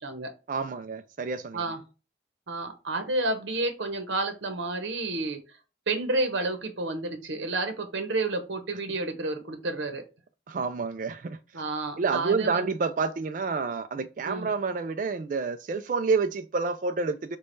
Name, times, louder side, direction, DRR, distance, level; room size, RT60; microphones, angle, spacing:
voice 1, 0.5-1.7 10.5-11.4 12.0-17.4, right 4 dB, 45° right, 0.3 m, -29 dB
voice 2, 2.5-5.4 5.9-10.0 11.5-12.6 14.2-14.5, right 2 dB, 85° right, 0.8 m, -30 dB
5.1 x 2.3 x 4.4 m
head